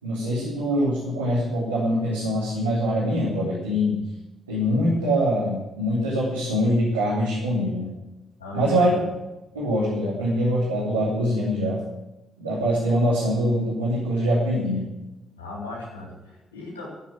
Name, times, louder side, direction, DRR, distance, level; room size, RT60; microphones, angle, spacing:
voice 1, 0.0-4.0 4.5-7.9 8.5-9.0 9.5-11.8 12.4-14.8, equal, 90° right, -9 dB, 3.4 m, -23 dB
voice 2, 8.4-9.1 15.4-16.9, left 3 dB, 85° left, -4 dB, 3.7 m, -37 dB
15.5 x 7.8 x 8.8 m, 1.0 s
figure-of-eight pair, 40°, 0 cm